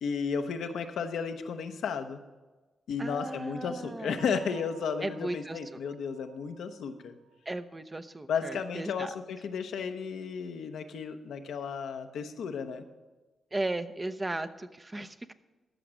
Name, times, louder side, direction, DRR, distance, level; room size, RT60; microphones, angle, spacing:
voice 1, 0.0-2.2 2.9-7.1 8.3-12.8, left 6 dB, 80° left, 6 dB, 0.8 m, -33 dB
voice 2, 3.0-4.2 5.0-5.8 7.5-9.1 13.5-15.3, right 2 dB, 25° right, 10 dB, 0.7 m, -36 dB
Bell, 4.2-7.8, right 11 dB, 80° right, 0.6 m, -56 dB
14.0 x 5.9 x 6.3 m, 1.2 s
supercardioid pair, 55°, 0 cm